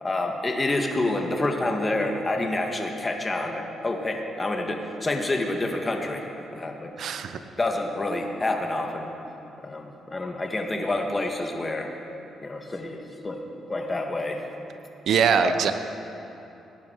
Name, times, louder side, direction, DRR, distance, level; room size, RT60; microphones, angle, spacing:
voice 1, 0.0-6.2 6.5-6.9 7.6-9.1 9.6-11.9 12.4-13.0 13.2-13.4 13.7-14.4 15.4-15.7, left 2 dB, 25° left, 3 dB, 1.6 m, -28 dB
voice 2, 7.0-7.4 15.1-15.7, right 7 dB, 65° right, 9 dB, 0.7 m, -22 dB
18.0 x 11.0 x 4.6 m, 2.9 s
cardioid pair, 90°, 0 cm